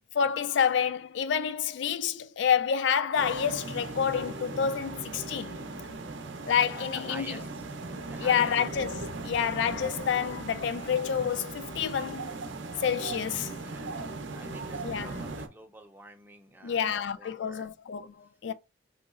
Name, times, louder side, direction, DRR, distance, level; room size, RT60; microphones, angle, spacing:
voice 1, 0.1-5.6 6.5-7.4 8.2-12.3 12.8-13.5 14.8-15.2 16.6-18.5, left 7 dB, 65° left, 0.3 m, -28 dB
sound 1, 3.2-15.5, right 3 dB, 70° right, 0.6 m, -38 dB
voice 2, 6.7-7.6 8.1-8.5 13.6-14.0 14.3-17.7, right 2 dB, 10° right, 0.4 m, -48 dB
3.7 x 3.0 x 2.4 m
head